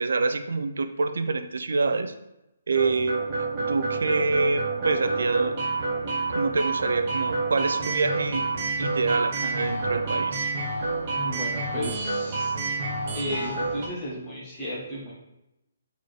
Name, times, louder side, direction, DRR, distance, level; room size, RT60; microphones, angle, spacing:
voice 1, 0.0-2.1 2.7-5.6 6.3-8.5 8.8-10.5, right 3 dB, 85° right, 9 dB, 0.6 m, -26 dB
sound 1, 2.7-13.9, right 3 dB, 30° right, 1.0 m, -28 dB
voice 2, 11.1-12.5 13.1-15.1, equal, 10° left, -6 dB, 1.1 m, -34 dB
8.2 x 4.0 x 3.3 m, 0.89 s
hypercardioid pair, 180°, 0 cm